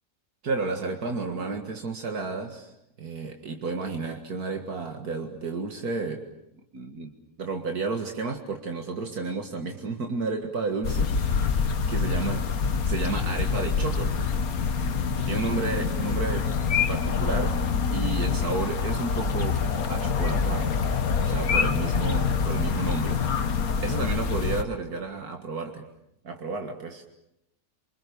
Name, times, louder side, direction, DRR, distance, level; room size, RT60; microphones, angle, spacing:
voice 1, 0.4-2.7 3.0-6.2 6.7-7.1 7.4-11.5 11.9-12.5 12.8-14.2 15.2-16.5 16.9-17.6 17.9-19.6 19.9-20.8 21.3-23.2 23.5-23.6 23.8-25.9 26.2-27.0, right 4 dB, 80° right, 4 dB, 2.3 m, -32 dB
sound 1, 10.8-24.6, left 5 dB, 70° left, 1.8 m, -26 dB
28.0 x 26.0 x 6.9 m, 0.82 s
omnidirectional pair, 1.6 m